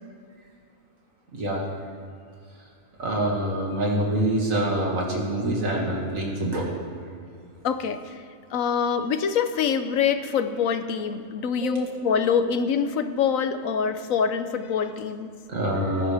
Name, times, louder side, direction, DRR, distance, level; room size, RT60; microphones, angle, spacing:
voice 1, 3.0-6.6 11.6-12.0 15.5-16.1, right 1 dB, 80° right, -2 dB, 2.6 m, -25 dB
voice 2, 7.6-8.2 8.5-15.3, left 6 dB, 85° left, 10 dB, 1.2 m, -25 dB
20.0 x 10.5 x 3.5 m, 2.3 s
omnidirectional pair, 1.4 m